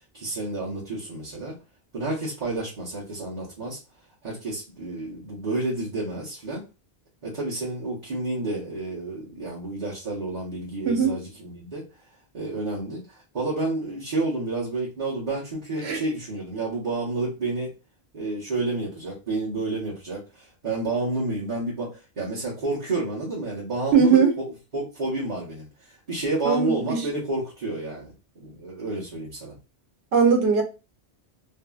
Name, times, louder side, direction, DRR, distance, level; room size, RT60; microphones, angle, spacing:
voice 1, 0.1-1.5 1.9-3.8 4.2-6.6 7.2-11.8 12.3-17.7 18.1-24.5 24.7-29.6, right 2 dB, 50° right, 1.1 m, -30 dB
voice 2, 23.9-24.3 26.4-27.1 30.1-30.6, right 6 dB, 90° right, 1.0 m, -19 dB
2.7 x 2.6 x 2.2 m
omnidirectional pair, 1.0 m